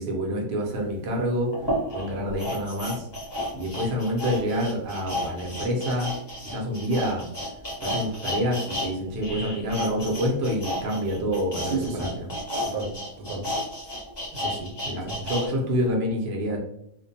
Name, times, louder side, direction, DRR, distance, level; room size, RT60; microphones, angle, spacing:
voice 1, 0.0-1.5 1.9-3.1 3.5-6.1 6.4-7.2 7.8-12.3 14.8-16.6, equal, 60° right, -1 dB, 0.6 m, -27 dB
sound 1, 0.8-0.9 1.5-8.9 9.2-15.5 15.8-15.9, equal, 30° left, 0.5 m, -32 dB
voice 2, 11.6-12.1 12.6-13.5 14.3-14.7 15.0-15.3, right 4 dB, 80° right, 2 dB, 1.0 m, -33 dB
2.5 x 2.1 x 2.6 m, 0.75 s
omnidirectional pair, 1.6 m